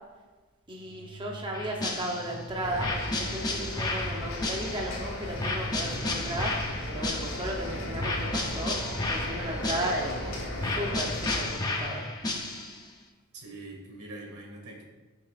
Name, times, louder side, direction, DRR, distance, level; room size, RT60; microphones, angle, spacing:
voice 1, 0.7-2.9 3.2-6.6 6.9-8.8 9.1-12.0, right 1 dB, 20° right, -1 dB, 0.9 m, -35 dB
sound 1, 0.7-12.5, right 1 dB, 55° right, 1.5 m, -47 dB
sound 2, 1.5-2.4 2.8-5.0 5.4-7.6 8.0-10.2 10.6-12.8, left 2 dB, 15° left, 0.8 m, -32 dB
sound 3, 2.6-11.5, left 1 dB, 60° left, 2.3 m, -36 dB
voice 2, 13.3-14.8, right 2 dB, 90° right, 0 dB, 2.2 m, -43 dB
16.0 x 5.9 x 2.5 m, 1.2 s
head